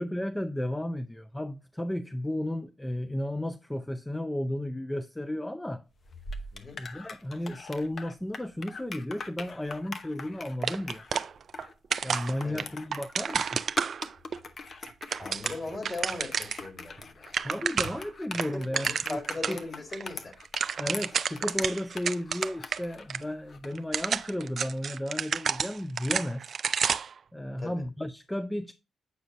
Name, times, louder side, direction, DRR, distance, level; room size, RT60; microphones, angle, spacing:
voice 1, 0.0-5.8 6.8-11.0 12.0-13.6 17.4-19.2 19.5-19.6 20.8-26.6 27.3-28.7, left 1 dB, 10° left, 0.4 m, -33 dB
sound 1, 6.0-23.8, left 3 dB, 50° left, 0.9 m, -43 dB
sound 2, 10.6-11.7 11.9-14.4 14.9-16.7 17.0-17.1 17.3-18.1 18.3-19.6 19.9-20.0 20.3-22.8 23.1-23.2 23.8-27.2, right 6 dB, 60° right, 0.3 m, -30 dB
voice 2, 15.2-17.7 18.7-20.3 27.6-27.8, left 3 dB, 35° left, 2.1 m, -39 dB
8.0 x 4.9 x 2.6 m
hypercardioid pair, 45°, 0 cm